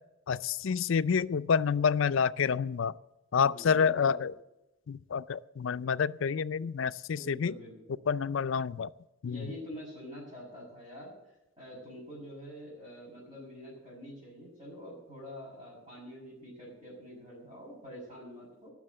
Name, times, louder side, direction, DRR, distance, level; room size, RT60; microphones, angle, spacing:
voice 1, 0.3-2.9 3.3-4.3 4.9-7.5 8.1-8.9 9.2-9.5, left 6 dB, 65° left, 15 dB, 0.4 m, -28 dB
voice 2, 3.3-4.2 7.1-8.0 9.2-11.1 11.6-18.7, equal, 25° right, -7 dB, 5.9 m, -46 dB
19.0 x 6.3 x 7.8 m, 0.92 s
head